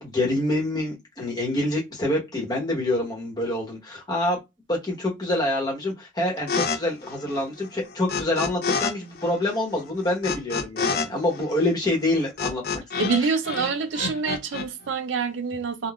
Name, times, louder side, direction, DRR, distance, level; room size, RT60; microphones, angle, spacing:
voice 1, 0.0-4.4 4.7-13.3, left 1 dB, 20° left, 1.1 m, -26 dB
sound 1, 6.5-6.8 7.0-8.9 9.2-13.2 13.5-14.7, left 5 dB, 50° left, 0.4 m, -28 dB
voice 2, 13.0-15.9, right 5 dB, 75° right, 0.5 m, -26 dB
3.7 x 2.2 x 2.4 m
head